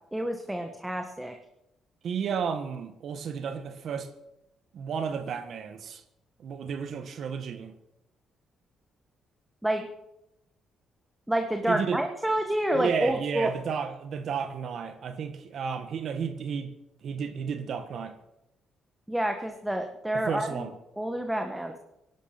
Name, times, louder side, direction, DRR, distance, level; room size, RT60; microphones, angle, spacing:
voice 1, 0.1-1.3 9.6-9.9 11.3-13.5 19.1-20.7 21.0-21.7, right 1 dB, 5° right, 1.5 m, -28 dB
voice 2, 2.0-4.1 4.7-6.0 6.4-7.7 11.7-12.0 12.7-16.7 17.0-18.2 20.1-20.7, right 6 dB, 65° right, 1.6 m, -32 dB
17.5 x 11.5 x 6.0 m
cardioid pair, 90°, 0 cm